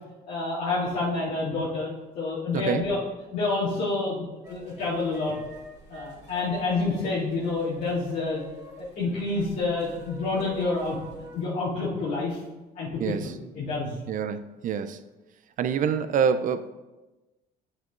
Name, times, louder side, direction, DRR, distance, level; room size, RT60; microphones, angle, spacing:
voice 1, 0.3-1.9 2.1-3.0 3.3-5.3 5.9-8.4 8.8-11.0 11.3-12.4 12.7-13.9, left 3 dB, 80° left, -11 dB, 2.4 m, -28 dB
sound 1, 4.4-11.4, equal, 20° right, 2.5 m, -46 dB
voice 2, 13.0-13.3 14.1-15.0 15.6-16.7, right 7 dB, 50° right, 11 dB, 0.5 m, -26 dB
9.4 x 7.5 x 2.5 m, 1.1 s
cardioid pair, 110°, 17 cm